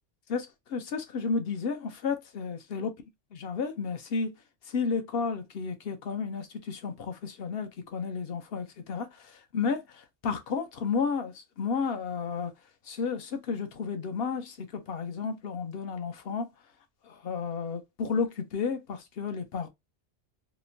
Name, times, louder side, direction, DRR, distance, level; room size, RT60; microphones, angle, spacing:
voice 1, 0.3-2.9 3.3-4.3 4.7-12.5 12.8-16.5 17.0-19.7, left 5 dB, 65° left, 0.8 m, -32 dB
2.9 x 2.1 x 2.5 m
omnidirectional pair, 1.1 m